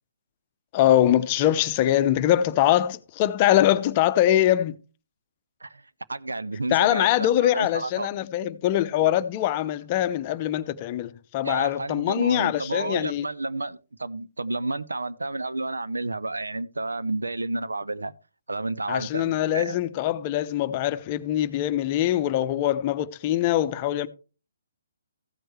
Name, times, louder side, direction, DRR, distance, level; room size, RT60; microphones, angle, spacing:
voice 1, 0.7-4.8 6.7-13.3 18.9-24.1, left 12 dB, 30° left, 0.7 m, -23 dB
voice 2, 6.1-8.1 11.4-18.1 18.5-19.7, right 2 dB, 85° right, 0.7 m, -31 dB
15.0 x 7.8 x 3.2 m
figure-of-eight pair, 140°, 0 cm